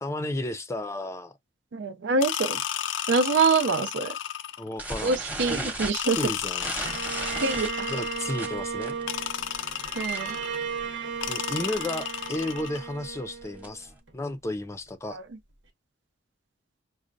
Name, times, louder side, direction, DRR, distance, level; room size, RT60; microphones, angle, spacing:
voice 1, 0.0-1.4 4.6-5.2 5.5-5.7 6.1-6.8 7.9-9.0 11.3-15.2, left 1 dB, 15° left, 0.5 m, -33 dB
voice 2, 1.7-2.6 3.1-4.2 5.0-6.2 7.4-7.9 10.0-10.4 15.1-15.2, right 4 dB, 70° right, 0.5 m, -25 dB
sound 1, 2.2-4.8 5.9-8.5 9.1-10.6 11.2-12.8, left 10 dB, 85° left, 0.4 m, -33 dB
sound 2, 4.8-10.4 10.7-11.0 11.2-11.3 11.6-11.9 12.4-13.9, right 2 dB, 10° right, 0.9 m, -36 dB
Bowed string instrument, 6.8-14.1, right 6 dB, 90° right, 1.1 m, -35 dB
6.2 x 2.1 x 2.6 m
head